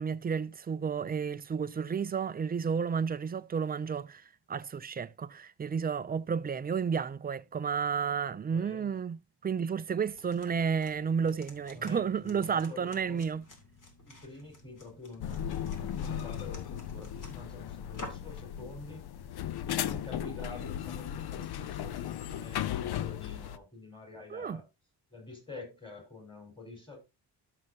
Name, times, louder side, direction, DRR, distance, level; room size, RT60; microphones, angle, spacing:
voice 1, 0.0-4.2 4.5-13.5 24.3-24.6, right 6 dB, 25° right, 0.3 m, -32 dB
voice 2, 8.5-8.9 11.7-13.2 14.0-19.0 19.6-24.6 25.1-27.0, left 3 dB, 10° left, 4.8 m, -47 dB
sound 1, 10.0-18.4, left 2 dB, 50° left, 2.7 m, -51 dB
sound 2, 15.2-23.6, left 10 dB, 65° left, 0.7 m, -36 dB
12.5 x 6.6 x 2.7 m
cardioid pair, 110°, 41 cm